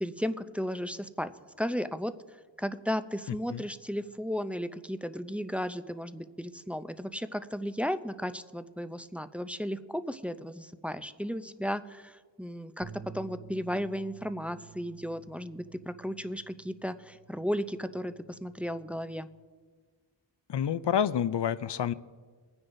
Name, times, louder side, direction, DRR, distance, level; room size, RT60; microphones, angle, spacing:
voice 1, 0.0-1.3 1.6-2.1 2.6-19.3, equal, 5° right, 11 dB, 0.4 m, -34 dB
sound 1, 12.8-19.1, right 7 dB, 40° right, 1.1 m, -52 dB
voice 2, 20.5-21.9, left 9 dB, 65° left, 16 dB, 0.5 m, -28 dB
22.0 x 9.7 x 2.6 m, 1.5 s
wide cardioid pair, 40°, 46 cm